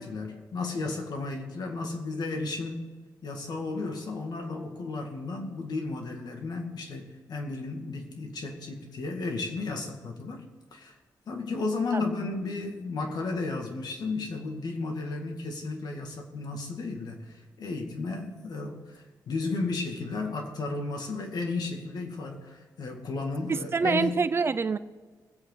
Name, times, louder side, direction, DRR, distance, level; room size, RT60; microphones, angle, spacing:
voice 1, 0.0-2.9 3.2-10.4 10.7-10.9 11.3-24.2, left 3 dB, 65° left, 2.4 m, -33 dB
voice 2, 23.5-24.8, right 4 dB, 30° right, 0.6 m, -26 dB
23.5 x 8.1 x 4.1 m
cardioid pair, 100°, 8 cm